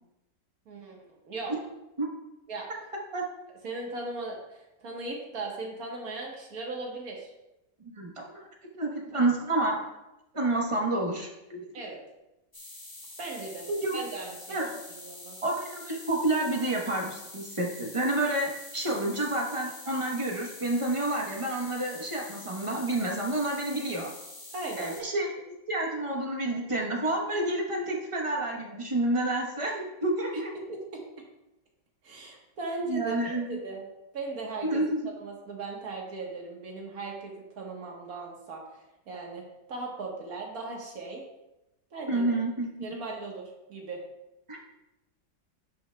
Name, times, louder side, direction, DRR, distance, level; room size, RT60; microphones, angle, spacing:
voice 1, 0.7-1.0 1.3-1.6 2.5-2.7 3.6-7.3 11.7-12.0 13.2-13.7 13.9-14.6 14.9-15.4 24.5-24.9 30.6-31.3 32.0-33.9 34.1-34.9 35.2-41.2 41.9-42.3 42.8-44.0, right 3 dB, 55° right, 0 dB, 1.7 m, -38 dB
voice 2, 7.8-8.5 8.7-9.8 10.3-11.6 13.7-14.0 14.5-14.7 15.4-24.1 24.8-25.3 25.7-30.5 32.8-33.6 34.6-35.1 42.1-43.0 44.5-44.6, right 2 dB, 25° right, -1 dB, 0.8 m, -29 dB
sound 1, 12.5-25.0, left 2 dB, 15° left, 0.8 m, -46 dB
11.0 x 5.8 x 2.2 m, 0.94 s
omnidirectional pair, 1.9 m